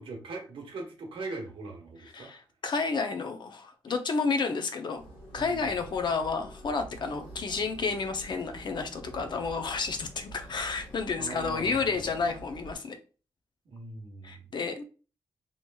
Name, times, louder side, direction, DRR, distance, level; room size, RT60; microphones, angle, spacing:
voice 1, 0.0-2.3 5.3-5.7 11.2-12.0 13.6-14.5, right 3 dB, 80° right, 1.0 m, -41 dB
voice 2, 2.1-5.0 5.3-13.0 14.2-14.8, left 4 dB, 60° left, 0.5 m, -31 dB
sound 1, 4.9-12.8, right 1 dB, 90° left, 1.3 m, -47 dB
3.0 x 2.9 x 2.2 m
cardioid pair, 65°, 9 cm